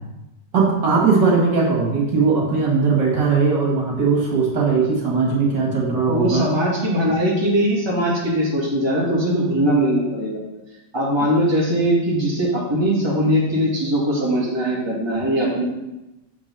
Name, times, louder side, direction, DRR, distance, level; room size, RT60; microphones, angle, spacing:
voice 1, 0.5-6.5, right 4 dB, 75° right, -3 dB, 2.6 m, -19 dB
voice 2, 6.1-10.4 10.9-15.6, equal, 15° right, -6 dB, 2.1 m, -20 dB
6.8 x 5.4 x 5.5 m, 0.99 s
omnidirectional pair, 1.9 m